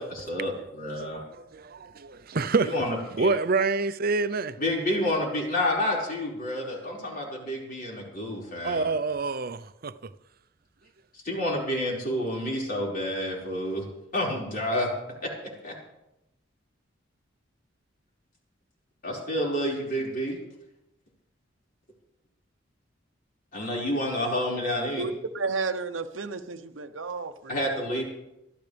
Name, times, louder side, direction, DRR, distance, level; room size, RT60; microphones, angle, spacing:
voice 1, 0.0-1.2 2.6-3.3 4.6-8.9 11.1-13.9 14.1-14.9 15.2-15.3 15.6-15.7 19.0-20.4 23.5-25.0 27.5-28.0, left 1 dB, 45° left, 5.3 m, -29 dB
voice 2, 1.0-2.7 3.2-4.6 8.6-9.9, right 3 dB, 50° right, 0.7 m, -27 dB
voice 3, 25.0-27.6, right 4 dB, 90° right, 0.9 m, -32 dB
23.0 x 14.5 x 3.5 m
head